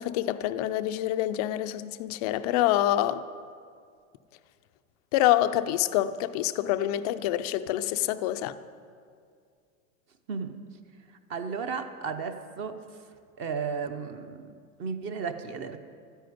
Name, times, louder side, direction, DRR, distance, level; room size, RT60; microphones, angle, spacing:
voice 1, 0.0-3.2 5.1-8.6, left 13 dB, 30° left, 0.4 m, -26 dB
voice 2, 10.3-10.7 11.3-12.8 13.4-15.8, right 5 dB, 30° right, 0.7 m, -34 dB
13.0 x 10.0 x 9.3 m
supercardioid pair, 150°, 42 cm